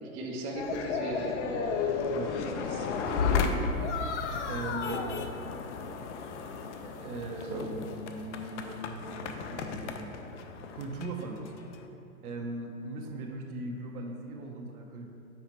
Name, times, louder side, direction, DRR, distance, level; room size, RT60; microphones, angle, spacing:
voice 1, 0.0-1.7 2.7-3.7 4.9-5.0 7.5-7.7, right 1 dB, 20° right, -1 dB, 0.4 m, -37 dB
sound 1, 0.6-11.8, left 5 dB, 55° left, 0.6 m, -33 dB
voice 2, 2.1-3.7 4.5-5.0 6.8-10.2 10.7-11.5 12.2-15.1, right 2 dB, 80° right, 2 dB, 0.9 m, -40 dB
5.8 x 4.1 x 4.4 m, 2.8 s
hypercardioid pair, 130°, 43 cm